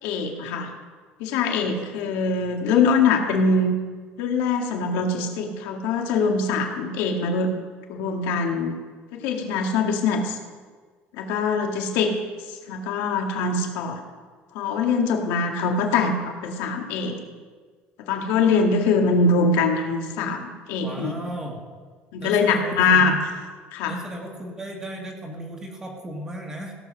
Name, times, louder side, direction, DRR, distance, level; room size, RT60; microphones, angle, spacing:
voice 1, 0.0-0.7 1.2-3.8 4.2-7.5 7.9-8.7 9.1-10.4 11.2-12.1 12.7-14.0 14.6-17.2 18.1-21.1 22.1-23.2 23.7-23.9, left 4 dB, 80° left, 2 dB, 1.9 m, -23 dB
voice 2, 20.8-21.7 22.2-23.2 23.9-26.7, equal, 15° right, 0 dB, 1.6 m, -35 dB
16.5 x 7.3 x 6.2 m, 1.5 s
cardioid pair, 165°, 4 cm